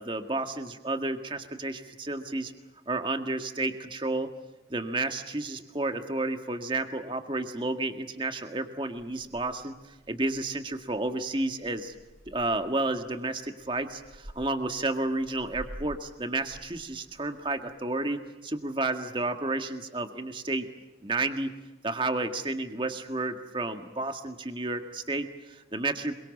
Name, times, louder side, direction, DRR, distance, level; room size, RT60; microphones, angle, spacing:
voice 1, 0.0-2.5 2.9-4.3 4.7-9.7 10.1-11.9 12.3-20.7 21.0-21.5 21.8-26.1, right 2 dB, 25° right, 6 dB, 1.8 m, -31 dB
Purr / Meow, 8.9-17.7, equal, 50° right, 4.7 m, -50 dB
26.5 x 23.5 x 7.3 m, 1.1 s
head